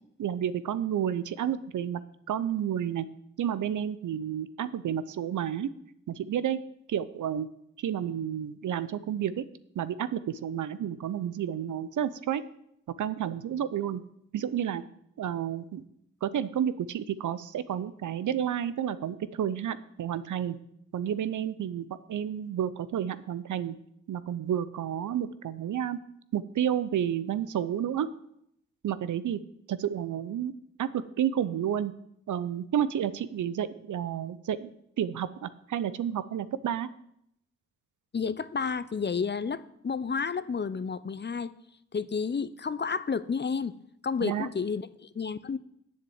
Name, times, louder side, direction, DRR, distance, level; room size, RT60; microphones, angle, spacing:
voice 1, 0.0-2.0 2.3-3.0 3.4-5.7 6.1-6.6 6.9-7.5 7.8-9.4 9.8-12.4 13.0-14.0 14.3-14.8 15.2-15.8 16.2-20.6 20.9-23.8 24.1-26.0 26.3-28.1 28.8-29.4 29.7-30.5 30.8-31.9 32.3-34.7 35.0-36.9 44.2-44.5, right 9 dB, 80° right, 15 dB, 0.6 m, -30 dB
voice 2, 38.1-41.5 41.9-43.7 44.0-45.6, left 5 dB, 35° left, 15 dB, 0.6 m, -31 dB
7.4 x 7.3 x 8.0 m, 0.74 s
cardioid pair, 50°, 30 cm